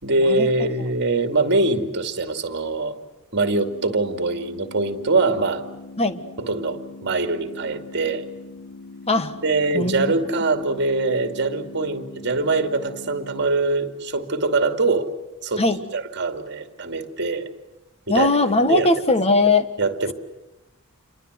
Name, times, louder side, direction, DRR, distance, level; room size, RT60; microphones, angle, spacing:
voice 1, 0.0-2.9 3.3-5.6 6.4-8.2 9.4-15.1 15.4-15.6 15.9-17.5 18.1-18.4 18.7-18.9 19.8-20.1, right 3 dB, 55° right, 8 dB, 2.4 m, -23 dB
sound 1, 3.5-13.5, left 3 dB, 75° left, 3.4 m, -42 dB
voice 2, 9.7-10.1 15.6-15.8 18.1-19.7, left 2 dB, 30° left, 10 dB, 1.6 m, -19 dB
28.5 x 24.0 x 8.0 m, 0.99 s
head